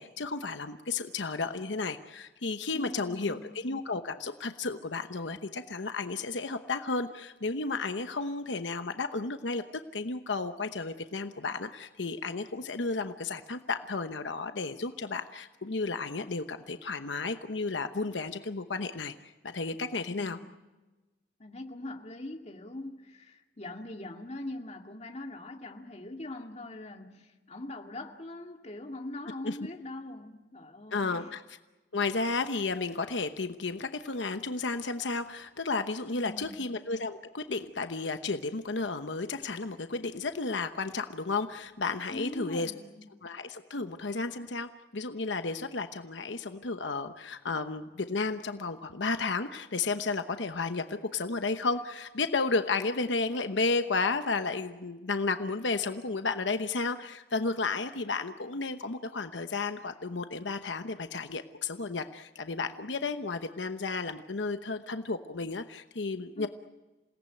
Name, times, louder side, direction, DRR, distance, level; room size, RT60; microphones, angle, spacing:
voice 1, 0.0-9.6 9.9-20.4 29.4-29.6 30.9-31.4 31.9-42.7 43.2-66.5, left 3 dB, 85° left, 1.0 m, -33 dB
voice 2, 2.7-3.6 20.1-20.6 21.4-31.4 36.1-36.7 42.1-43.1 66.4-66.5, left 1 dB, 35° left, 2.2 m, -42 dB
28.0 x 18.0 x 9.1 m
head